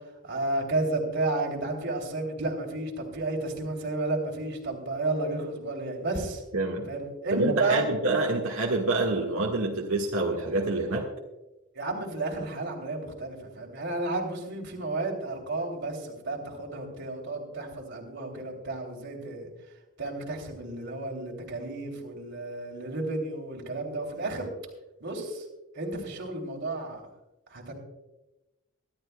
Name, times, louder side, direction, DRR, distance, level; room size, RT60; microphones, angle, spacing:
voice 1, 0.2-6.4 6.9-7.9 11.7-19.5 20.0-24.5 25.0-25.4 25.7-27.0 27.5-27.7, right 2 dB, 55° right, 1 dB, 3.0 m, -32 dB
voice 2, 6.5-6.9 7.3-11.1, right 2 dB, 85° right, -2 dB, 1.6 m, -27 dB
24.0 x 12.0 x 2.2 m, 1.0 s
head